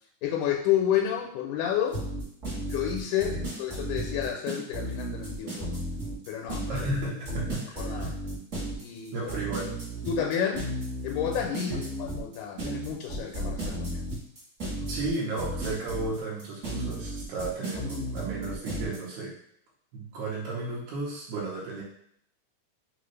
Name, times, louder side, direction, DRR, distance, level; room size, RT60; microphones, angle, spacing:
voice 1, 0.2-2.0 2.7-5.8 6.3-6.9 7.8-8.1 8.8-9.3 10.1-10.6 11.0-14.0, left 9 dB, 85° left, 1 dB, 2.1 m, -30 dB
sound 1, 1.9-19.0, right 1 dB, 40° right, 1.2 m, -34 dB
voice 2, 6.7-8.1 9.1-9.7 11.7-11.8 14.8-19.4 19.9-21.8, right 2 dB, 75° right, -6 dB, 2.2 m, -34 dB
5.0 x 2.7 x 3.1 m, 0.69 s
omnidirectional pair, 3.6 m